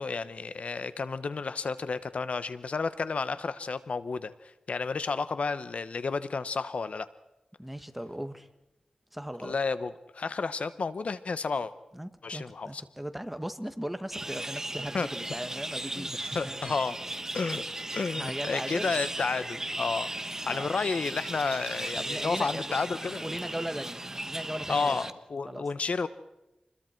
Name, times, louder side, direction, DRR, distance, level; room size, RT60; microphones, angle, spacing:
voice 1, 0.0-7.1 9.4-11.7 12.2-12.8 14.9-15.1 16.0-16.1 16.3-17.0 17.3-17.7 17.9-20.1 20.5-23.2 24.7-26.1, left 4 dB, 75° left, 14 dB, 0.9 m, -31 dB
voice 2, 7.6-8.5 9.1-9.5 11.9-16.7 18.1-18.9 20.4-20.7 21.9-22.8 23.2-25.0 25.4-25.7, equal, 5° right, 9 dB, 1.6 m, -38 dB
sound 1, 14.1-25.1, right 1 dB, 25° right, 1.3 m, -37 dB
27.5 x 21.5 x 4.6 m, 0.94 s
wide cardioid pair, 65°, 2 cm